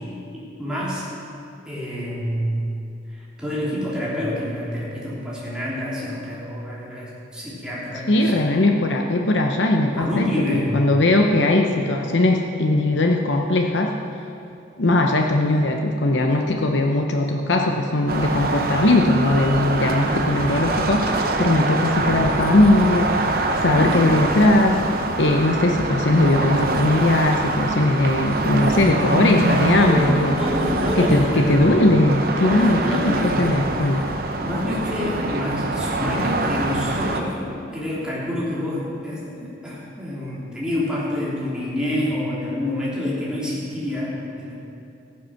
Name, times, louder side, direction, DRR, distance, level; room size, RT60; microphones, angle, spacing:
voice 1, 0.3-1.1 1.6-2.8 3.1-8.4 9.9-10.7 20.0-20.2 23.6-24.0 29.8-31.6 32.4-33.7 34.4-44.5, left 1 dB, 5° right, -8 dB, 3.0 m, -27 dB
voice 2, 8.1-14.0 14.8-24.8 25.2-30.4 31.0-34.1, left 2 dB, 70° left, 3 dB, 0.8 m, -19 dB
sound 1, 18.1-37.2, right 2 dB, 50° right, 0.9 m, -24 dB
14.5 x 9.6 x 5.8 m, 2.6 s
head